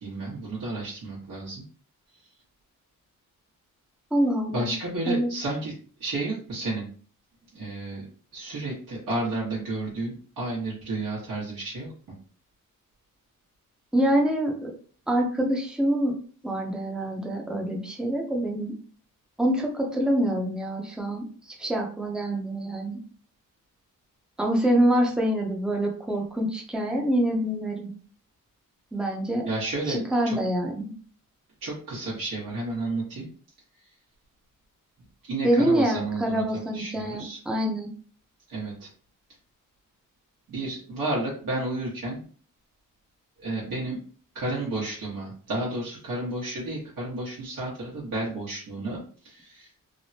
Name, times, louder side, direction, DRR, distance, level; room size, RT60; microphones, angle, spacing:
voice 1, 0.0-1.6 4.5-5.7 6.0-6.8 7.5-8.0 8.3-11.9 29.4-30.4 31.6-33.3 35.2-37.4 38.5-38.9 40.5-42.2 43.4-44.0 44.3-49.7, right 2 dB, 75° right, -6 dB, 1.2 m, -32 dB
voice 2, 4.1-4.7 5.1-5.3 13.9-14.7 15.1-16.2 16.4-18.7 19.4-21.3 21.6-23.0 24.4-27.9 28.9-29.5 29.9-30.9 35.4-37.9, right 1 dB, ahead, 0 dB, 0.6 m, -25 dB
3.4 x 2.1 x 2.7 m, 0.43 s
cardioid pair, 95°, 32 cm